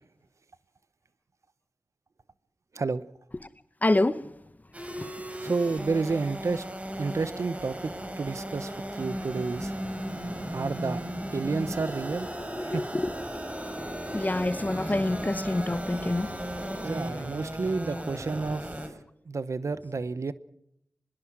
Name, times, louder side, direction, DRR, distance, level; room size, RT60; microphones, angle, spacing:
voice 1, 3.8-4.3 5.0-5.1 12.6-13.1 13.5-13.7 14.1-16.4 16.6-17.2, left 2 dB, 30° left, 1.0 m, -28 dB
sound 1, 4.7-18.9, right 1 dB, 25° right, 4.7 m, -36 dB
voice 2, 5.4-6.6 7.0-8.7 9.0-9.7 10.5-11.0 11.3-12.3 12.6-12.9 16.8-18.6 19.3-20.3, right 4 dB, 70° right, 0.9 m, -30 dB
24.0 x 21.5 x 6.1 m
cardioid pair, 50°, 5 cm